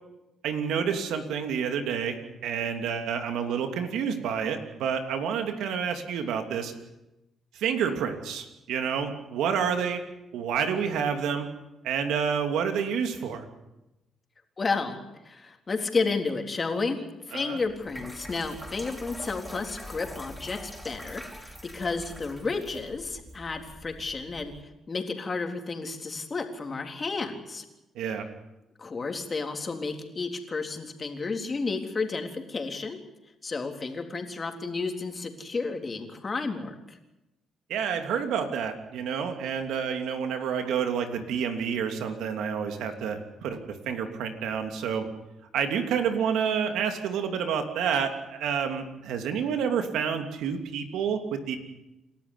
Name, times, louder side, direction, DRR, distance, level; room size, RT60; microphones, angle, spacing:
voice 1, 0.4-6.7 7.5-10.0 10.3-11.5 11.8-13.4 17.3-17.6 27.9-28.3 37.7-45.1 45.5-51.6, right 7 dB, 85° right, 6 dB, 3.0 m, -29 dB
voice 2, 14.6-15.0 15.2-27.7 28.8-33.0 33.4-37.0, left 4 dB, 35° left, 4 dB, 3.7 m, -32 dB
sound 1, 17.7-24.6, equal, ahead, 6.5 m, -44 dB
28.5 x 13.0 x 9.8 m, 0.94 s
cardioid pair, 90°, 0 cm